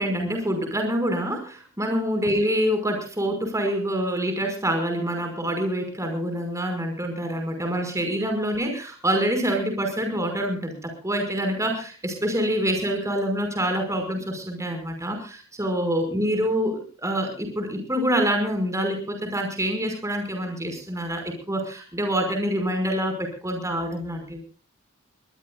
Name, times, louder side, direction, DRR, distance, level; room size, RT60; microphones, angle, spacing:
voice 1, 0.0-24.4, equal, 15° right, 5 dB, 5.4 m, -26 dB
22.5 x 21.0 x 2.4 m, 0.37 s
head